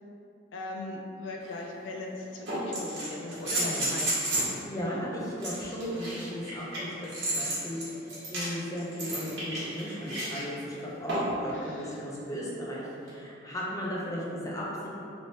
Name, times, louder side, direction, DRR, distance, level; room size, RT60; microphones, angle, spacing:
voice 1, 0.5-4.5 4.8-5.1 11.5-12.1, left 2 dB, 70° left, 0 dB, 0.4 m, -39 dB
sound 1, 1.4-1.5 2.5-4.6 5.4-10.4 11.1-11.4 13.1-13.2, right 1 dB, 65° right, 1.2 m, -32 dB
voice 2, 3.6-3.9 4.6-14.9, equal, 15° left, -5 dB, 0.5 m, -36 dB
3.0 x 2.9 x 2.8 m, 2.6 s
head